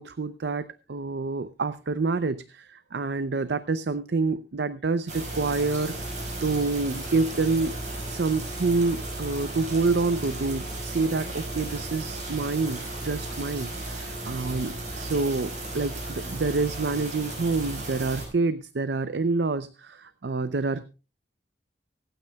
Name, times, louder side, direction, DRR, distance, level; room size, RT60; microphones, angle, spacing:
voice 1, 0.0-5.9 6.4-7.8 8.1-20.8, right 3 dB, 70° right, 13 dB, 0.6 m, -27 dB
sound 1, 5.1-18.3, right 2 dB, 45° right, 5.2 m, -35 dB
24.5 x 9.0 x 2.3 m, 0.32 s
head